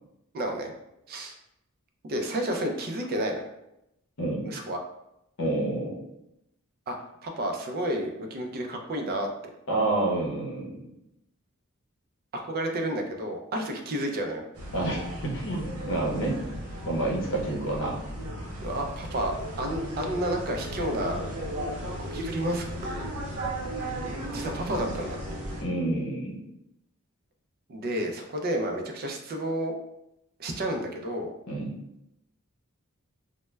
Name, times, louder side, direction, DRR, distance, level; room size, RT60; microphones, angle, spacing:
voice 1, 0.3-0.7 1.1-1.4 2.0-3.5 4.4-4.8 6.9-7.0 7.2-9.3 12.3-14.4 18.6-21.2 22.0-23.1 24.3-25.2 27.7-29.7 30.4-31.3, right 1 dB, 45° right, 3 dB, 0.4 m, -31 dB
voice 2, 5.4-6.0 9.7-10.8 14.7-16.4 16.9-18.0 25.6-26.4 31.5-31.7, right 2 dB, 60° left, -1 dB, 0.7 m, -28 dB
sound 1, 14.5-25.6, right 1 dB, 85° right, 0.7 m, -36 dB
2.2 x 2.0 x 3.1 m, 0.83 s
head